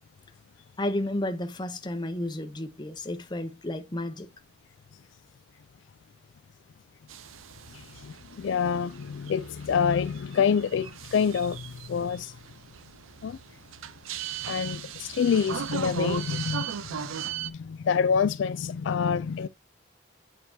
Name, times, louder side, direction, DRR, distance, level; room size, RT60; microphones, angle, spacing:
voice 1, 0.8-4.3, left 1 dB, 20° left, 0.7 m, -32 dB
sound 1, 7.1-17.5, right 8 dB, 90° right, 0.6 m, -38 dB
voice 2, 8.0-11.6 11.9-12.3 13.2-13.4 14.5-17.0 17.4-19.5, left 6 dB, 65° left, 0.3 m, -27 dB
9.1 x 4.6 x 2.7 m
head